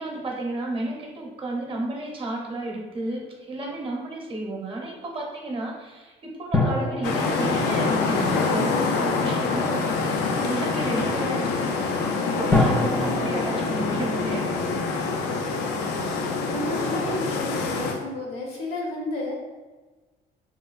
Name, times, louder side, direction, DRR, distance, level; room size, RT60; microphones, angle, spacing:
voice 1, 0.0-11.9 12.3-14.8, right 2 dB, 30° right, -1 dB, 0.7 m, -32 dB
sound 1, 6.5-9.1 12.5-15.1 15.4-15.5, left 2 dB, 10° left, 0.4 m, -28 dB
sound 2, 7.0-17.9, left 4 dB, 85° left, 0.4 m, -25 dB
voice 2, 15.5-19.3, left 1 dB, 65° left, -2 dB, 0.9 m, -33 dB
3.0 x 2.6 x 2.3 m, 1.3 s
cardioid pair, 110°, 17 cm